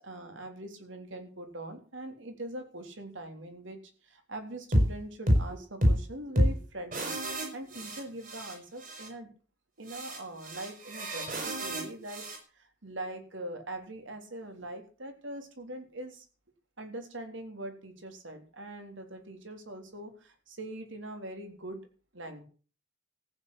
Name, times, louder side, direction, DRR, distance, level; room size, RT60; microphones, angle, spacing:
voice 1, 0.0-9.3 9.8-12.3 12.5-16.3 16.8-21.8 22.1-22.4, right 1 dB, 65° right, 6 dB, 3.6 m, -42 dB
sound 1, 4.7-4.9 5.3-5.5 5.8-6.0 6.4-6.6 6.9-8.5 8.8-9.1 9.9-12.4, equal, 45° right, 5.4 m, -28 dB
14.5 x 8.7 x 8.4 m, 0.38 s
head